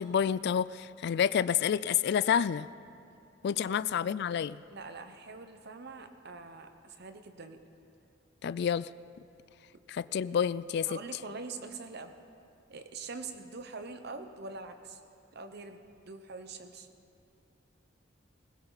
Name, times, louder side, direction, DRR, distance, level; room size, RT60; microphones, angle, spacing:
voice 1, 0.0-2.7 3.4-4.6 8.4-8.9 9.9-11.0, left 8 dB, 60° left, 17 dB, 0.3 m, -29 dB
voice 2, 4.7-7.6 10.9-12.1 12.7-15.0 15.3-15.8 16.0-16.9, right 3 dB, 60° right, 8 dB, 1.0 m, -44 dB
20.0 x 16.5 x 4.0 m, 2.7 s
head